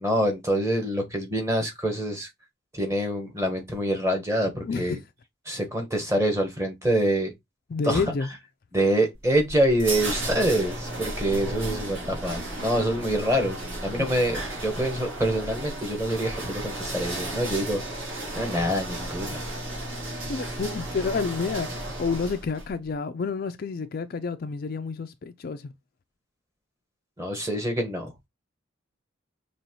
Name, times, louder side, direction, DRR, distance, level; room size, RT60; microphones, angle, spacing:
voice 1, 0.0-2.3 2.7-5.0 5.5-7.3 7.8-8.0 8.7-17.8 18.3-19.4 27.2-28.1, right 1 dB, 15° right, 1.1 m, -26 dB
voice 2, 4.6-5.0 7.7-8.3 14.0-14.1 20.2-25.7, left 4 dB, 45° left, 0.4 m, -29 dB
sound 1, 9.1-22.7, right 1 dB, 65° right, 2.2 m, -34 dB
5.5 x 3.0 x 2.9 m
head